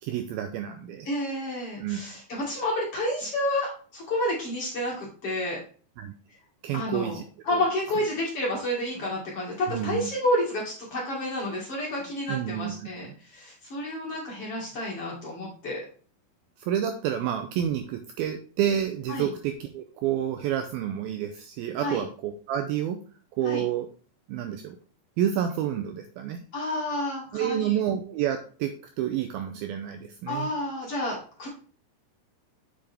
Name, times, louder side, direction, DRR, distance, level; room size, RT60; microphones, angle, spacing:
voice 1, 0.0-1.1 1.8-2.0 6.0-6.1 6.6-7.2 7.5-7.6 9.7-10.1 12.3-12.7 16.6-23.0 23.4-23.9 24.3-24.8 25.2-26.4 27.3-28.7 29.0-30.5, right 10 dB, 80° right, 7 dB, 2.2 m, -29 dB
voice 2, 1.1-5.6 6.7-7.2 7.4-15.9 19.1-19.3 21.8-22.0 23.4-23.6 26.5-27.8 30.3-31.5, left 1 dB, 45° left, -3 dB, 2.3 m, -30 dB
7.6 x 7.1 x 3.4 m, 0.41 s
omnidirectional pair, 4.9 m